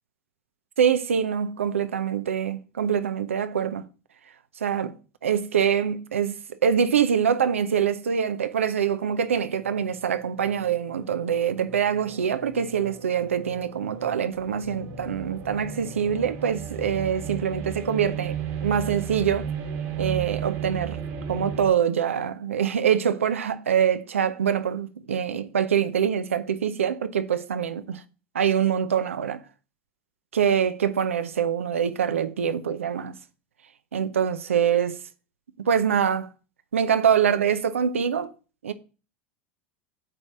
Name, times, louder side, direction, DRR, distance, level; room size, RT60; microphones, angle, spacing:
voice 1, 0.8-3.8 4.6-19.5 20.0-21.0 21.3-28.0 28.3-29.4 30.3-33.2 33.9-35.0 35.6-36.3 36.7-38.3 38.6-38.7, right 8 dB, 85° right, 0.6 m, -24 dB
sound 1, 9.8-21.7, right 7 dB, 65° right, 1.8 m, -35 dB
8.6 x 3.3 x 6.0 m
hypercardioid pair, 85°, 7 cm